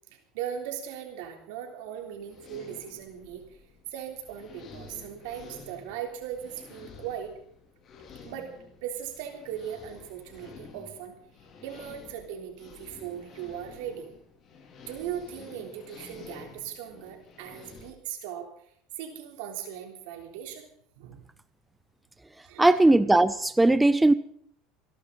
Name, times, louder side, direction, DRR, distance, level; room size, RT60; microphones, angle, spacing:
voice 1, 0.1-3.6 3.9-7.3 8.2-8.5 8.8-11.1 11.6-14.1 14.9-18.5 19.0-20.7 21.0-21.2 22.4-22.8, right 9 dB, 80° right, 4 dB, 3.5 m, -38 dB
sound 1, 2.0-17.9, left 4 dB, 40° left, 3.3 m, -50 dB
voice 2, 22.6-24.1, right 2 dB, 10° right, 14 dB, 0.6 m, -19 dB
29.0 x 11.5 x 4.1 m, 0.65 s
supercardioid pair, 110°, 0 cm